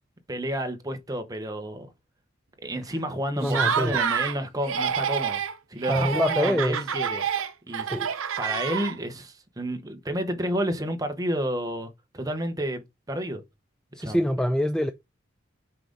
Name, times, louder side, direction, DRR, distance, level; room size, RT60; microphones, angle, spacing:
voice 1, 0.3-1.9 2.6-5.4 5.7-7.3 7.7-7.9 8.4-13.4 14.0-14.2, equal, 15° right, 0.9 m, -30 dB
voice 2, 3.4-4.0 5.9-6.9 7.8-8.1 13.9-14.9, equal, 5° left, 0.3 m, -25 dB
Laughter, 3.4-4.4 4.6-5.5 5.8-9.2, right 7 dB, 85° right, 0.8 m, -28 dB
5.8 x 4.9 x 3.9 m
head